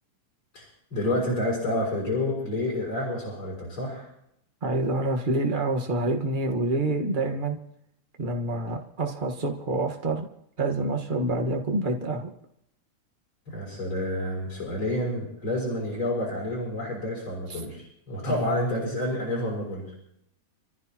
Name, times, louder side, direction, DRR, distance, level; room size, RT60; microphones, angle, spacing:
voice 1, 0.5-4.1 13.5-19.9, left 1 dB, 40° left, -5 dB, 6.3 m, -29 dB
voice 2, 4.6-7.6 8.2-10.3 10.6-12.3 17.5-17.6 18.2-18.4, right 2 dB, 65° right, 3 dB, 0.5 m, -27 dB
28.5 x 14.5 x 3.0 m, 0.75 s
omnidirectional pair, 3.6 m